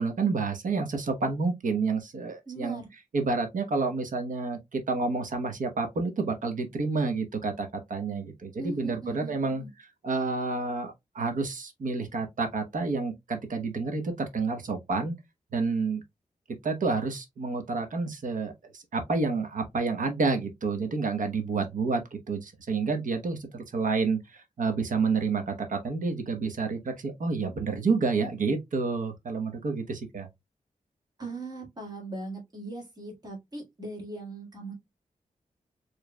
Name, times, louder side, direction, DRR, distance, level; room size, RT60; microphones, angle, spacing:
voice 1, 0.0-2.8 3.1-9.6 10.0-15.1 15.5-16.0 16.6-30.3, right 4 dB, 70° right, 1.0 m, -29 dB
voice 2, 2.5-2.9 8.6-9.7 31.2-34.7, right 2 dB, 30° right, 1.9 m, -39 dB
4.9 x 3.1 x 2.2 m
wide cardioid pair, 170°, 14 cm